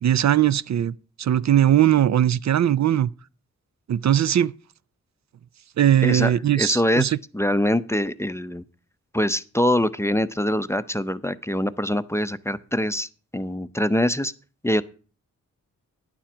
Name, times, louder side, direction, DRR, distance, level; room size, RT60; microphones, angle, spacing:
voice 1, 0.0-3.1 3.9-4.5 5.8-7.2, right 11 dB, 60° right, 0.5 m, -20 dB
voice 2, 6.0-7.1 7.3-8.6 9.1-14.3 14.6-14.8, left 1 dB, 10° left, 0.5 m, -24 dB
10.5 x 7.3 x 6.0 m
wide cardioid pair, 100°, 31 cm